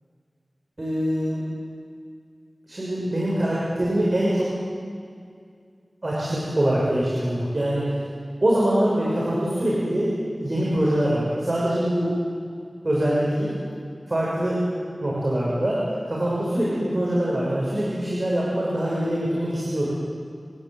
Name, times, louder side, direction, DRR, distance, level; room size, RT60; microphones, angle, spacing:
voice 1, 0.8-1.4 2.7-4.5 6.0-7.9 8.4-10.1 10.4-12.1 12.8-13.5 14.1-14.6 15.0-15.8 16.1-19.9, right 1 dB, 45° right, -6 dB, 6.5 m, -23 dB
29.0 x 12.5 x 9.2 m, 2.2 s
wide cardioid pair, 65°, 0 cm